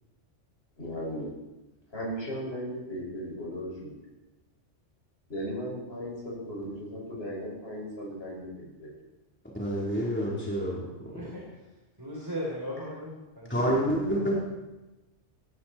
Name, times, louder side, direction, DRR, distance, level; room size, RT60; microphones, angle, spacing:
voice 1, 0.8-1.3 1.9-3.9 5.3-8.9, equal, 55° left, -4 dB, 6.6 m, -36 dB
voice 2, 9.5-10.9 11.1-11.2 13.5-14.3, equal, 10° left, -5 dB, 3.8 m, -28 dB
voice 3, 11.1-11.5 12.0-13.5, equal, 15° right, -3 dB, 3.5 m, -37 dB
18.5 x 16.5 x 4.4 m, 1.1 s
omnidirectional pair, 1.3 m